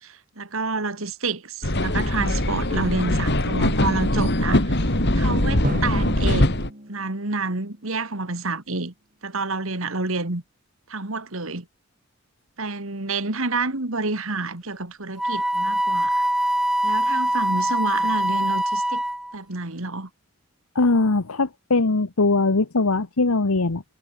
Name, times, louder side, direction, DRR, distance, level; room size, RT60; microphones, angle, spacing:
voice 1, 0.0-4.8 5.1-6.6 6.9-8.9 9.2-10.4 10.9-11.7 12.6-16.2 16.8-19.0 19.3-20.1, right 3 dB, 65° right, 2.3 m, -29 dB
sound 1, 1.6-6.7, left 1 dB, 50° left, 3.7 m, -22 dB
Drum, 5.6-8.5, right 1 dB, 40° right, 4.7 m, -35 dB
Wind instrument woodwind instrument, 15.2-19.3, right 1 dB, ahead, 1.2 m, -23 dB
voice 2, 20.7-23.8, left 3 dB, 80° left, 1.2 m, -21 dB
head